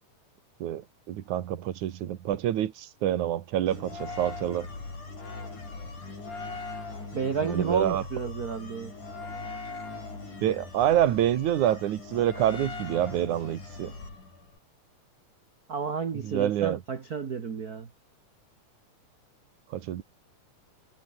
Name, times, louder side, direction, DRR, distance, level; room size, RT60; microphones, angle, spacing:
voice 1, 0.6-4.7 7.4-8.0 10.4-13.9 16.2-16.8 19.7-20.0, right 11 dB, 70° right, 2.8 m, -27 dB
sound 1, 3.7-14.6, left 3 dB, 65° left, 9.4 m, -40 dB
voice 2, 7.1-8.9 15.7-17.9, right 6 dB, 40° right, 1.4 m, -31 dB
omnidirectional pair, 3.8 m